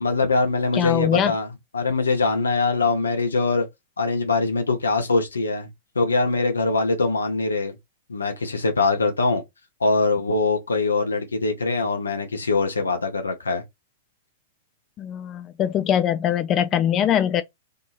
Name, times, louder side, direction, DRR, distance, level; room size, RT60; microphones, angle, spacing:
voice 1, 0.0-3.7 4.0-5.7 5.9-7.8 8.1-9.4 9.8-13.6, left 3 dB, 80° left, 0.7 m, -23 dB
voice 2, 0.7-1.3 15.0-17.4, left 10 dB, 30° left, 0.3 m, -22 dB
2.7 x 2.7 x 2.4 m
figure-of-eight pair, 105°, 0 cm